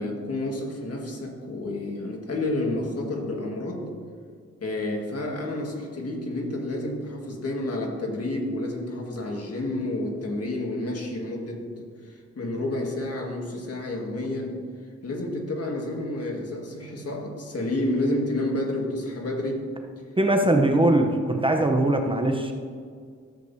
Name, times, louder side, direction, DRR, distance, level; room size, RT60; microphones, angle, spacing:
voice 1, 0.0-3.9 4.6-14.6 15.0-19.7 20.5-20.6, left 1 dB, 55° left, 0 dB, 1.7 m, -30 dB
voice 2, 20.2-22.5, right 1 dB, 15° right, 3 dB, 0.7 m, -21 dB
13.5 x 7.9 x 2.7 m, 2.1 s
cardioid pair, 95°, 30 cm